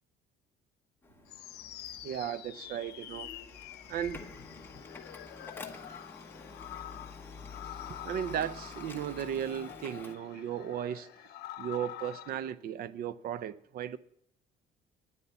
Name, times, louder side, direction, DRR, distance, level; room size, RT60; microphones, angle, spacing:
Printer, 1.0-10.2, left 3 dB, 10° left, 1.2 m, -49 dB
sound 1, 1.3-12.5, left 12 dB, 75° left, 0.9 m, -47 dB
voice 1, 2.0-3.3 3.9-4.3 8.0-11.1 11.6-14.0, right 9 dB, 60° right, 0.6 m, -35 dB
9.7 x 9.6 x 7.1 m
cardioid pair, 110°, 17 cm